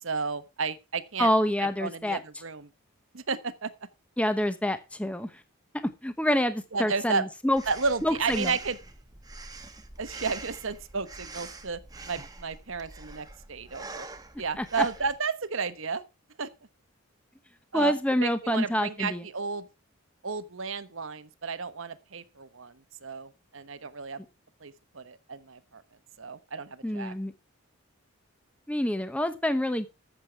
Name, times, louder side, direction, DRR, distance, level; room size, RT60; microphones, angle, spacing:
voice 1, 0.0-1.3 1.8-2.7 3.1-3.7 6.7-7.3 7.7-8.8 10.0-11.8 12.0-14.1 14.4-16.0 16.4-16.5 17.7-19.7 20.2-24.2 24.6-25.8 26.2-27.1, right 4 dB, 65° right, 1.1 m, -32 dB
voice 2, 1.2-2.2 4.2-5.3 6.0-7.6 8.0-8.6 14.6-14.7 17.7-19.2 26.8-27.3 28.7-29.9, left 1 dB, 5° left, 0.9 m, -27 dB
Breathing, 7.6-15.2, right 3 dB, 20° right, 1.2 m, -44 dB
14.0 x 7.6 x 4.6 m
head